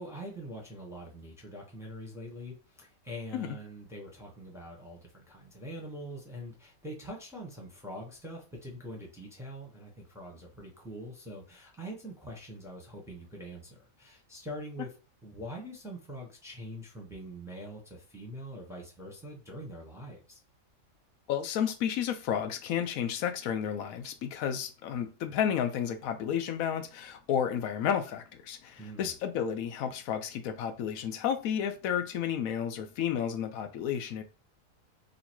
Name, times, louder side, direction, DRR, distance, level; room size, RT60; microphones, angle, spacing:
voice 1, 0.0-14.9 15.2-20.4 28.8-29.1, equal, ahead, 0.8 m, -44 dB
voice 2, 21.3-34.2, left 9 dB, 80° left, 1.0 m, -32 dB
3.0 x 2.6 x 4.4 m
omnidirectional pair, 1.4 m